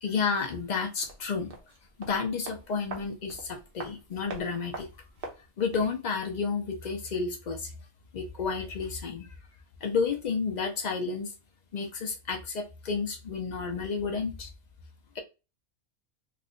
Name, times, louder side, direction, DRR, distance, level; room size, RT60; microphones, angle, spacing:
voice 1, 0.0-1.5 2.0-4.9 5.4-7.7 8.1-9.3 9.8-11.3 11.7-14.5, left 5 dB, 80° left, 0.4 m, -31 dB
sound 1, 1.0-6.0 6.2-6.3, right 3 dB, 45° right, 0.9 m, -44 dB
3.3 x 2.1 x 3.7 m
omnidirectional pair, 1.5 m